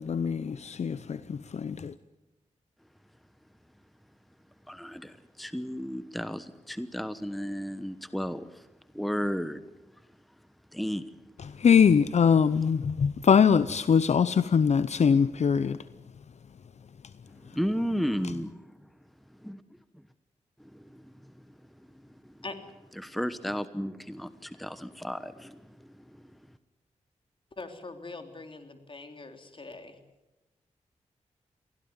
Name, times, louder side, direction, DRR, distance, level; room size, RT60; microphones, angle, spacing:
voice 1, 0.0-1.9 11.6-15.8, left 6 dB, 60° left, 15 dB, 0.7 m, -22 dB
voice 2, 4.7-8.7 8.9-9.7 10.7-11.0 17.5-18.7 19.4-19.6 19.9-20.0 20.6-21.3 22.2-22.3 23.0-26.0, equal, ahead, 13 dB, 1.1 m, -34 dB
voice 3, 27.5-30.0, left 3 dB, 40° left, 6 dB, 3.4 m, -42 dB
23.0 x 16.5 x 9.7 m, 1.0 s
cardioid pair, 55°, 13 cm